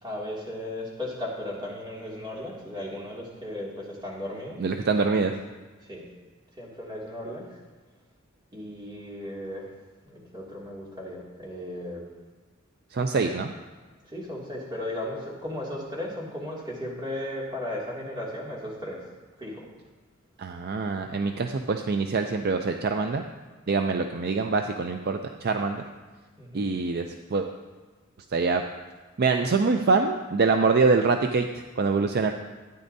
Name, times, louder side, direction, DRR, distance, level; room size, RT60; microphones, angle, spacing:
voice 1, 0.0-4.6 5.9-6.0 6.6-7.6 8.5-9.7 10.0-12.0 14.1-19.0 19.4-19.7 26.4-26.7, left 1 dB, 20° right, -4 dB, 2.4 m, -36 dB
voice 2, 4.6-5.3 12.9-13.5 20.4-23.2 23.7-25.8 26.5-27.5 28.3-28.6 29.2-31.5 31.8-32.3, right 4 dB, 50° right, 5 dB, 0.4 m, -24 dB
14.0 x 9.5 x 2.7 m, 1.3 s
head